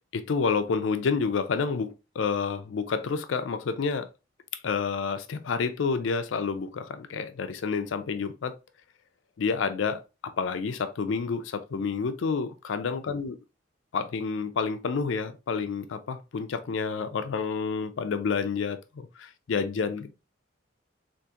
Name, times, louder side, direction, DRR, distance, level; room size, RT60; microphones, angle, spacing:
voice 1, 0.1-4.1 4.6-8.6 9.4-13.4 13.9-20.1, left 5 dB, 85° left, 0.4 m, -29 dB
3.6 x 2.5 x 2.7 m
head